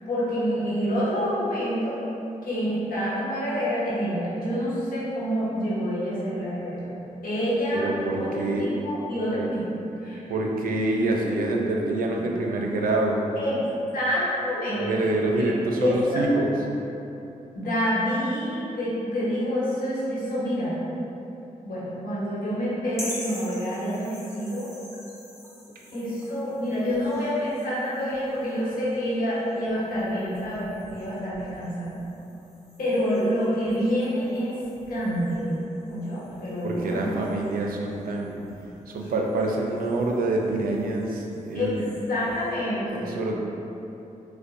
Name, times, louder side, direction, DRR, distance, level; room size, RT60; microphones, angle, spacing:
voice 1, 0.1-2.0 2.4-6.8 7.2-7.9 8.1-9.6 10.0-10.2 13.4-13.6 13.9-15.5 15.7-16.2 17.5-20.8 21.6-24.7 25.9-32.0 32.8-34.6 34.9-35.6 35.9-37.2 41.5-43.1, equal, 80° left, -9 dB, 1.1 m, -27 dB
voice 2, 7.7-8.7 9.4-9.5 10.3-13.3 14.7-16.5 36.6-38.4 38.9-41.8 42.9-43.3, right 2 dB, 80° right, 0 dB, 0.4 m, -26 dB
sound 1, 22.9-42.5, left 1 dB, 20° left, 0.8 m, -46 dB
5.1 x 2.1 x 2.5 m, 3.0 s
cardioid pair, 55°, 15 cm